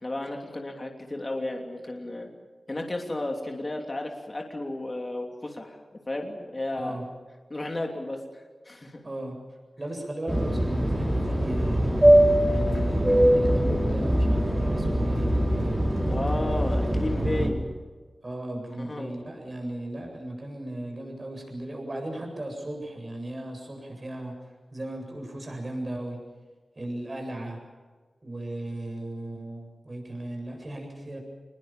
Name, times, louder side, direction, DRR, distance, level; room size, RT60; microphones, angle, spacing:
voice 1, 0.0-2.3 2.7-7.0 7.5-9.0 16.0-17.7 18.8-19.1, left 1 dB, 30° left, 2 dB, 3.0 m, -33 dB
voice 2, 6.7-7.0 9.0-9.3 9.8-12.1 12.5-15.9 18.2-24.3 24.7-26.2 26.7-27.6 28.2-31.2, right 1 dB, 35° right, 2 dB, 8.0 m, -36 dB
Fixed-wing aircraft airplane, 10.3-17.5, right 1 dB, 15° right, 6.1 m, -22 dB
26.5 x 21.0 x 7.5 m, 1.4 s
wide cardioid pair, 100°, 0 cm